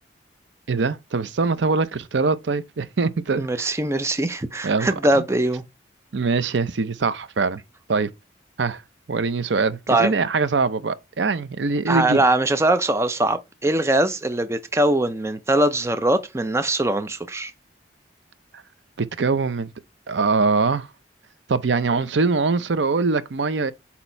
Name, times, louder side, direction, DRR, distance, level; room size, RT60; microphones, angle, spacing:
voice 1, 0.7-3.7 4.6-4.9 5.1-5.2 6.1-7.6 7.9-8.1 8.6-8.8 9.1-12.2 19.0-19.7 20.1-20.9 21.5-23.7, right 4 dB, 75° right, 0.6 m, -23 dB
voice 2, 3.3-5.6 9.9-10.1 11.9-17.5, right 1 dB, 15° right, 0.5 m, -21 dB
8.2 x 2.9 x 4.5 m
head